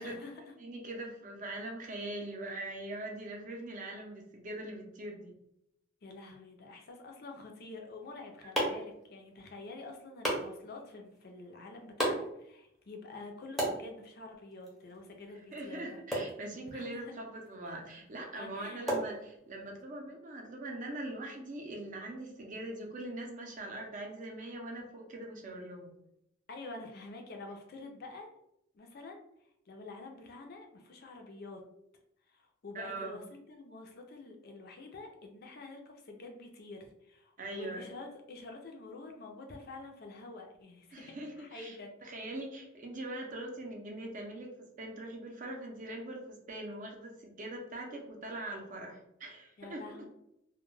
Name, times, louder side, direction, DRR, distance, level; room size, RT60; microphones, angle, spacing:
voice 1, 0.0-0.5 6.0-16.0 16.7-17.2 18.4-18.9 26.5-28.3 28.7-29.2 29.7-31.6 32.3-41.9 49.6-50.1, left 3 dB, 50° left, 3 dB, 0.4 m, -47 dB
voice 2, 0.6-5.3 8.4-8.5 15.5-25.9 32.7-33.2 37.4-37.9 40.9-50.1, right 1 dB, 40° right, 1 dB, 0.5 m, -42 dB
sound 1, 7.9-19.8, right 1 dB, ahead, 0.6 m, -39 dB
2.2 x 2.1 x 3.1 m, 0.78 s
head